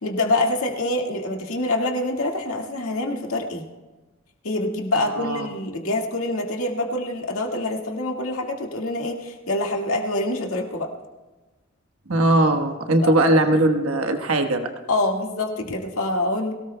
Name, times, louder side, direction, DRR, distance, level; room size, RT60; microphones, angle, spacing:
voice 1, 0.0-3.6 4.4-10.9 13.0-13.1 14.9-16.5, left 2 dB, 90° left, 0 dB, 1.9 m, -25 dB
voice 2, 5.2-5.5 12.1-14.7, right 1 dB, 90° right, 5 dB, 1.2 m, -19 dB
23.0 x 17.5 x 2.2 m, 1.2 s
head